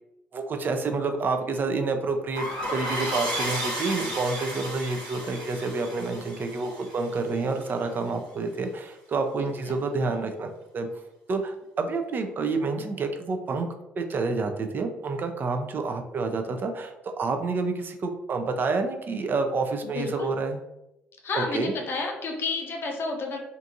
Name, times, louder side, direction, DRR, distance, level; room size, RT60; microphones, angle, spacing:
voice 1, 0.3-10.5 10.7-10.9 11.3-13.7 14.0-20.6 21.4-21.7, right 3 dB, 45° right, 6 dB, 0.4 m, -28 dB
sound 1, 2.3-7.7, equal, 85° right, 0.9 m, -33 dB
voice 2, 20.0-20.3 21.2-23.4, left 3 dB, 50° left, 2 dB, 0.5 m, -30 dB
2.6 x 2.4 x 2.5 m, 0.90 s
hypercardioid pair, 55°, 5 cm